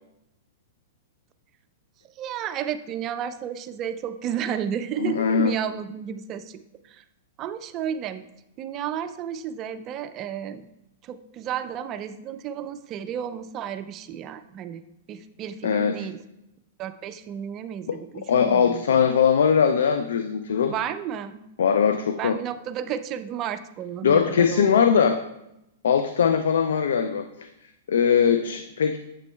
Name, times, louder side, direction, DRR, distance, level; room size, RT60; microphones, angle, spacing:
voice 1, 2.2-6.6 6.8-7.0 7.4-8.2 8.6-10.7 11.0-16.2 16.8-19.0 20.7-21.4 22.1-24.9, right 9 dB, 35° right, 11 dB, 0.4 m, -32 dB
voice 2, 5.0-5.5 15.6-16.1 17.9-18.0 18.3-20.7 21.6-22.4 24.0-25.2 25.8-27.5 27.9-29.0, left 7 dB, 80° left, 8 dB, 0.3 m, -21 dB
7.7 x 6.0 x 2.2 m, 0.86 s
hypercardioid pair, 125°, 0 cm